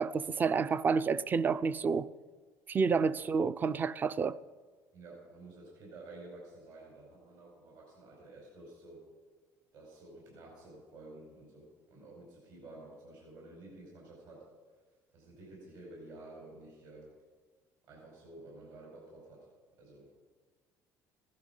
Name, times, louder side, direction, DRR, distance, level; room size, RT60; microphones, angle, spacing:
voice 1, 0.0-2.1 2.7-4.3, right 5 dB, 25° right, 0.4 m, -29 dB
voice 2, 4.9-9.0 9.7-14.4 15.1-17.1 17.9-19.5 19.8-20.2, right 2 dB, 65° right, 5.3 m, -51 dB
16.0 x 12.0 x 5.5 m
cardioid pair, 125°, 7 cm